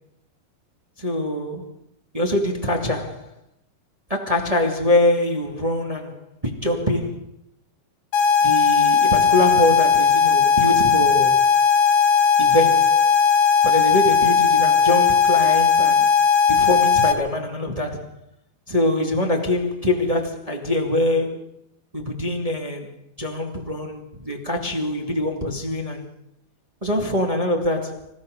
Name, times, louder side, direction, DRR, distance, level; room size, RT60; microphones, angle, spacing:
voice 1, 1.0-1.6 2.1-3.3 4.1-7.2 8.4-11.4 12.4-13.1 13.6-16.1 16.5-18.1 18.7-21.4 21.9-22.9 23.2-26.1 26.8-28.1, left 1 dB, 15° right, 1.8 m, -24 dB
sound 1, 8.1-17.1, left 6 dB, 65° left, 2.9 m, -17 dB
26.0 x 16.5 x 6.5 m
omnidirectional pair, 3.8 m